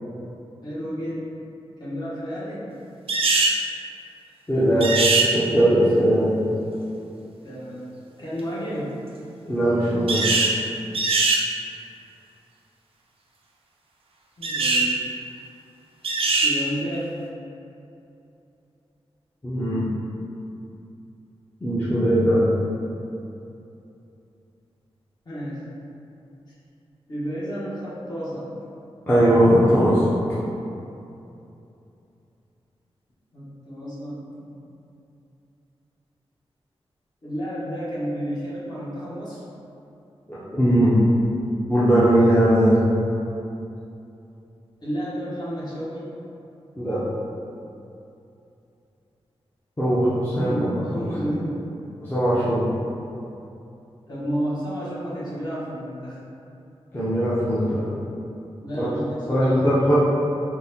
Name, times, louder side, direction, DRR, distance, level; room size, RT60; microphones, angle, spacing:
voice 1, 0.6-1.3 1.8-2.6 7.4-7.8 8.2-9.0 14.4-14.9 16.4-17.1 25.2-25.6 27.1-28.5 33.3-34.5 37.2-39.4 44.8-46.1 50.3-51.6 54.1-56.2 58.6-60.0, equal, 40° left, -9 dB, 1.0 m, -31 dB
sound 1, 3.1-3.6 4.8-5.3 10.1-10.6 10.9-11.4 14.4-14.9 16.0-16.5, right 3 dB, 65° right, 0.4 m, -21 dB
voice 2, 4.5-6.4 9.4-10.3 19.4-19.9 21.6-22.6 29.1-30.0 40.3-41.0 41.7-42.9 46.8-47.0 49.8-50.7 51.0-51.1 52.0-52.6 56.9-57.8 58.8-58.9 59.3-60.0, right 1 dB, 20° left, -12 dB, 0.6 m, -19 dB
3.8 x 2.1 x 2.8 m, 2.8 s
wide cardioid pair, 105°, 11 cm